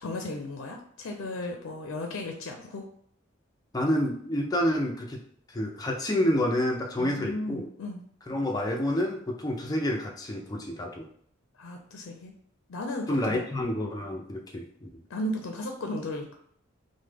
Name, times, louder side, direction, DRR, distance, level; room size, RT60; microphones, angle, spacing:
voice 1, 0.0-2.9 7.0-8.0 11.6-12.3 12.7-13.4 15.1-16.3, left 1 dB, 75° left, 3 dB, 0.4 m, -35 dB
voice 2, 3.7-5.2 5.5-7.7 8.3-11.1 13.1-14.9, left 1 dB, 20° left, 1 dB, 0.4 m, -28 dB
3.1 x 2.1 x 3.3 m, 0.64 s
head